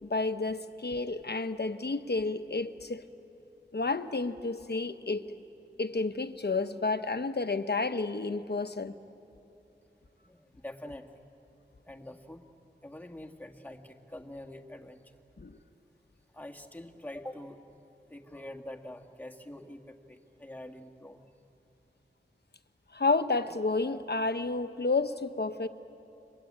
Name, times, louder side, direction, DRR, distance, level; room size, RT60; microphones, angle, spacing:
voice 1, 0.0-3.0 3.7-5.4 5.8-8.9 15.4-15.6 22.9-25.7, left 3 dB, 60° left, 9 dB, 1.1 m, -31 dB
voice 2, 10.2-11.3 11.9-12.5 12.8-15.2 16.3-17.6 18.1-21.3, left 1 dB, 10° left, 2 dB, 1.9 m, -45 dB
30.0 x 23.0 x 8.8 m, 3.0 s
wide cardioid pair, 65°, 19 cm